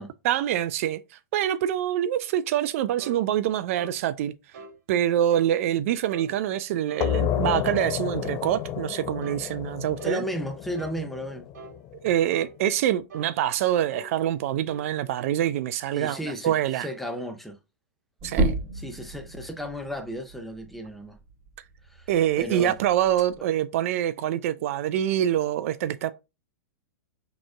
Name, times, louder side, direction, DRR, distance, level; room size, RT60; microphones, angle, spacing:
voice 1, 0.2-4.3 4.9-10.2 12.0-16.9 18.2-18.5 22.1-26.1, right 11 dB, 50° right, 0.4 m, -25 dB
sound 1, 3.0-3.2 3.8-4.0 4.5-4.8 5.3-5.5 6.1-6.3 6.9-7.1 7.7-7.9 8.4-8.7 9.2-9.5 10.0-10.2 10.8-11.0 11.5-11.8 12.3-12.5 13.1-13.3 13.9-14.1 14.7-14.9, right 3 dB, 65° right, 1.3 m, -43 dB
sound 2, 7.0-12.3, left 11 dB, 30° left, 0.3 m, -31 dB
voice 2, 10.0-11.5 15.9-17.6 18.7-21.2 21.9-22.1 22.4-22.8, equal, ahead, 0.7 m, -34 dB
sound 3, 18.2-23.4, right 2 dB, 25° right, 2.0 m, -32 dB
6.0 x 3.0 x 2.3 m
hypercardioid pair, 110°, 9 cm